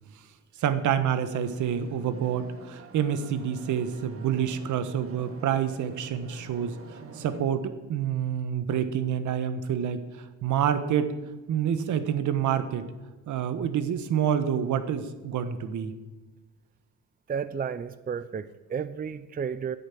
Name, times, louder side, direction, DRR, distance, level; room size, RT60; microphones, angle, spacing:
voice 1, 0.6-6.7 7.2-10.0 10.4-11.1 11.5-12.9 13.3-15.9, right 9 dB, 75° right, 11 dB, 1.3 m, -27 dB
sound 1, 1.4-7.4, right 4 dB, 45° right, 1.8 m, -47 dB
voice 2, 17.3-19.8, right 7 dB, 30° right, 14 dB, 0.6 m, -32 dB
10.0 x 9.3 x 8.5 m, 1.2 s
cardioid pair, 90°, 30 cm